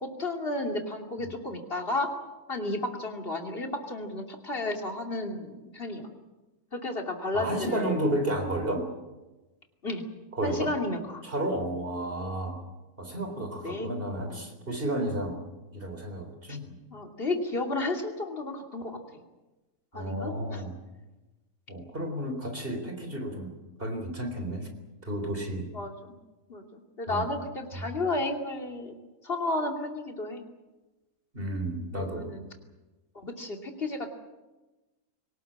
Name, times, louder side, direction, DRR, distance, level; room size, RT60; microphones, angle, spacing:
voice 1, 0.0-2.1 2.5-6.1 6.7-8.0 9.8-10.0 10.4-11.2 13.6-13.9 14.3-14.5 16.5-16.6 16.9-19.2 19.9-20.6 25.7-26.2 26.5-29.0 29.2-30.4 31.9-32.5 33.1-34.1, left 2 dB, 40° left, 3 dB, 2.9 m, -33 dB
voice 2, 7.3-8.9 10.4-10.7 11.2-12.6 13.0-15.4 15.7-16.7 19.9-20.7 21.7-23.5 23.8-24.7 25.1-25.7 27.1-27.3 31.3-32.3, right 1 dB, 40° right, 5 dB, 3.9 m, -32 dB
23.0 x 19.0 x 8.7 m, 1.1 s
omnidirectional pair, 1.5 m